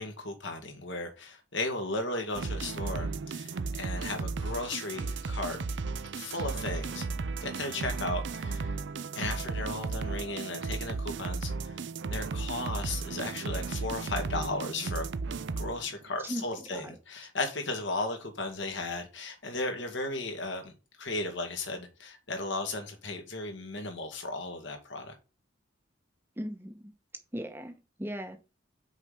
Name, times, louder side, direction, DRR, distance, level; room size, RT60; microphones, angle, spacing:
voice 1, 0.0-5.6 6.1-7.1 7.4-8.7 9.1-11.8 12.1-15.1 15.6-20.7 21.0-25.1, left 2 dB, 65° left, 2.0 m, -35 dB
sound 1, 2.3-16.0, right 4 dB, 60° right, 0.5 m, -35 dB
voice 2, 26.4-26.9 27.3-28.4, equal, 10° right, 1.0 m, -38 dB
6.3 x 5.0 x 5.8 m
head